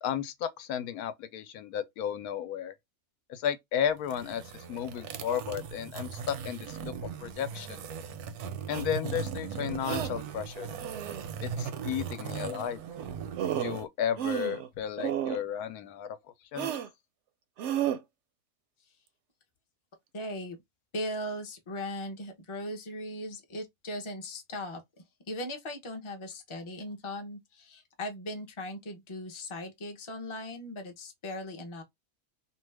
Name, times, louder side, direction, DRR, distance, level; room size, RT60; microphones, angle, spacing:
voice 1, 0.0-2.7 3.3-4.4 4.7-6.9 7.2-7.8 8.7-10.7 11.4-12.8 13.6-16.1 16.5-16.7, left 9 dB, 85° left, 1.1 m, -33 dB
sound 1, 4.0-13.9, right 7 dB, 90° right, 1.1 m, -38 dB
sound 2, 8.7-8.8 9.8-10.1 10.8-11.3 13.0-13.1 13.4-13.8 14.2-14.7 15.0-15.4 16.6-16.9 17.6-18.0, right 10 dB, 65° right, 0.7 m, -32 dB
voice 2, 20.1-20.6 20.9-24.8 25.3-31.8, left 1 dB, 30° left, 0.6 m, -38 dB
2.7 x 2.3 x 3.2 m
omnidirectional pair, 1.6 m